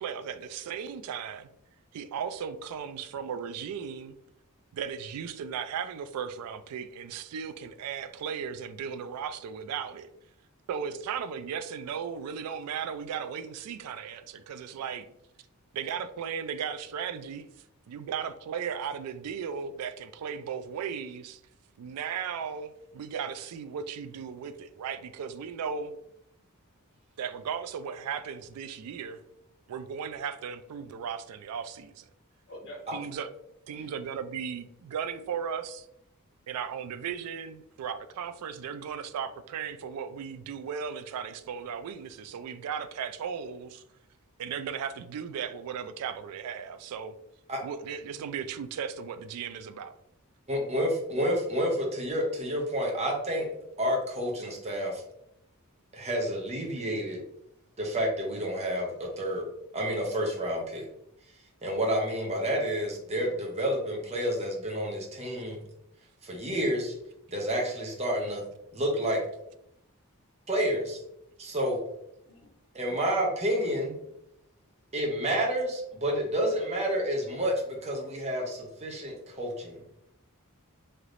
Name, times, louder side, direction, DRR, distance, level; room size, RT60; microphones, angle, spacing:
voice 1, 0.0-1.5 1.9-4.2 4.7-10.1 10.7-15.1 15.7-17.5 17.9-21.4 21.8-25.9 27.2-29.2 29.7-32.1 32.9-33.3 33.7-35.9 36.5-43.8 44.4-47.1 47.6-49.9, right 7 dB, 90° right, 0.3 m, -36 dB
voice 2, 32.5-33.0 33.7-33.9 50.6-50.8 70.7-70.8 72.2-72.6, equal, 55° left, 1.0 m, -47 dB
voice 3, 50.5-53.5 53.8-55.0 55.9-57.2 57.8-59.4 59.7-60.9 61.6-65.6 66.2-67.0 67.3-68.4 68.7-69.2 70.5-71.0 71.4-71.8 72.7-74.0 74.9-79.8, equal, 30° right, 0.7 m, -29 dB
3.3 x 2.8 x 2.5 m
head